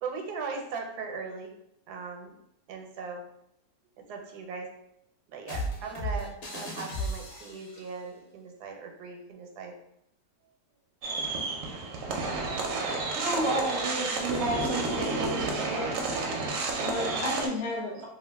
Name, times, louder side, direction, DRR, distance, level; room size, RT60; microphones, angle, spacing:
voice 1, 0.0-1.5 1.9-2.4 2.7-3.2 4.1-4.7 5.3-9.7, right 4 dB, 85° right, 2 dB, 1.2 m, -38 dB
sound 1, 5.5-7.8, equal, 50° left, 0.9 m, -35 dB
sound 2, 11.0-17.5, right 3 dB, 70° right, 0.8 m, -31 dB
voice 2, 13.1-16.0, right 1 dB, 35° right, -3 dB, 0.5 m, -31 dB
voice 3, 16.3-18.0, left 2 dB, 75° left, -2 dB, 0.4 m, -34 dB
2.7 x 2.4 x 3.3 m, 0.78 s
omnidirectional pair, 1.7 m